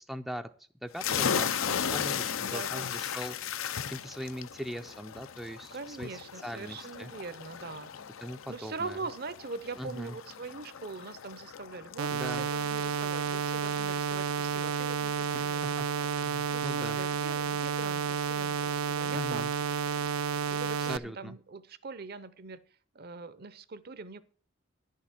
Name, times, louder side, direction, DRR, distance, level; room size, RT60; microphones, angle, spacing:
voice 1, 0.0-1.6 1.9-3.6 3.9-7.1 8.2-9.0 9.8-10.2 12.1-12.5 15.3-17.0 19.0-19.5 20.8-21.4, equal, ahead, 6 dB, 0.4 m, -41 dB
sound 1, 1.0-14.3, left 8 dB, 80° left, 0.6 m, -36 dB
voice 2, 1.2-1.9 2.4-3.0 5.7-7.9 8.5-16.1 16.5-19.8 20.5-22.6 22.9-24.2, right 3 dB, 50° right, 15 dB, 0.7 m, -42 dB
sound 2, 12.0-21.0, right 6 dB, 90° right, 0.4 m, -31 dB
10.5 x 6.5 x 7.3 m, 0.43 s
head